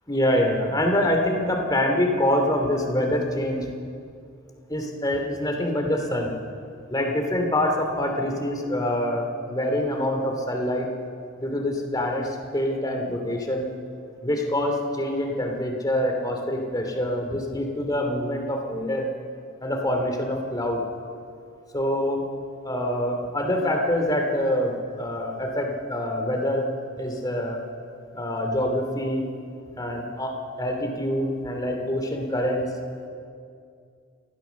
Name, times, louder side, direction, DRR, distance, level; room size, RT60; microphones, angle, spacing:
voice 1, 0.1-3.7 4.7-6.3 6.9-10.9 11.4-13.7 14.2-19.1 19.6-20.8 21.7-22.2 22.6-26.7 27.0-27.6 28.1-29.3 29.7-30.3 30.6-32.7, left 1 dB, 20° left, 3 dB, 2.7 m, -25 dB
28.0 x 14.5 x 7.0 m, 2.3 s
head